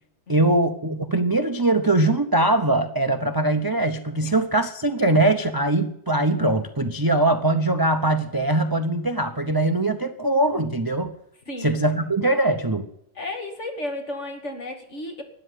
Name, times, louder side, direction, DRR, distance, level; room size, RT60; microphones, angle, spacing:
voice 1, 0.3-11.1 11.6-12.9, right 2 dB, 25° right, 9 dB, 0.5 m, -22 dB
voice 2, 11.5-11.8 13.1-15.2, left 1 dB, 40° left, 4 dB, 2.6 m, -33 dB
13.0 x 10.0 x 9.4 m, 0.76 s
omnidirectional pair, 2.0 m